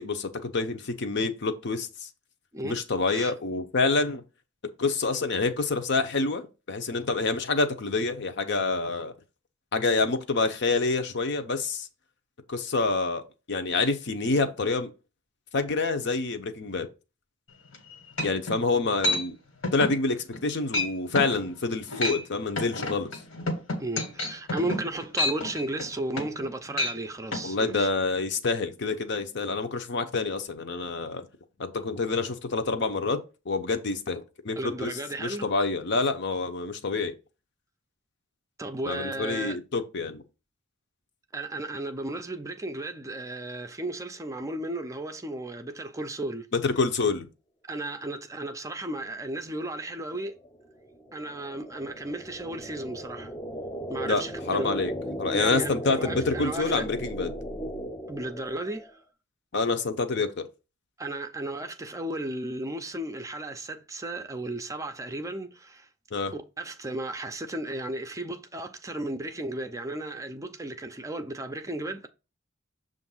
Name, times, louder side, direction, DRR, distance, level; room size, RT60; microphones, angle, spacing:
voice 1, 0.0-2.1 2.6-4.2 4.8-9.1 9.7-11.9 12.5-13.2 13.5-14.9 15.5-16.9 18.2-19.3 19.7-23.1 27.4-31.3 31.6-33.2 33.5-34.9 35.2-37.1 38.9-40.2 46.5-47.3 54.0-54.2 54.5-54.9 55.2-57.3 59.5-60.5 66.1-66.3, left 3 dB, 60° left, 0.7 m, -27 dB
sound 1, 17.7-17.8 18.2-18.6 19.0-19.2 19.6-20.0 20.3-20.5 20.7-20.9 21.1-21.4 21.8-22.2 22.6-26.4 26.7-27.0 27.3-27.4, left 1 dB, 85° left, 1.5 m, -29 dB
voice 2, 23.8-27.9 34.6-35.5 38.6-39.6 41.3-46.5 47.7-50.4 51.1-53.3 53.9-54.7 55.3-56.9 58.1-59.0 61.0-65.9 66.3-72.1, right 1 dB, 15° right, 0.5 m, -34 dB
sound 2, 50.0-58.9, equal, 15° left, 0.7 m, -36 dB
6.8 x 2.6 x 5.5 m
head